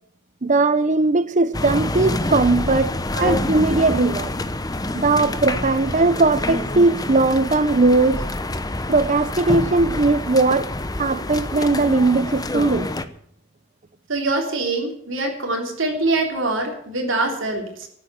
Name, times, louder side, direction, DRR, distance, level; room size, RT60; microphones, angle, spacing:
voice 1, 0.4-4.3 4.9-8.2 8.9-10.7 11.0-12.9, right 3 dB, 40° right, 0.8 m, -19 dB
sound 1, 1.5-13.0, left 2 dB, 20° left, 0.8 m, -27 dB
voice 2, 14.1-17.9, right 2 dB, 70° right, 3.5 m, -24 dB
14.0 x 8.9 x 9.2 m
head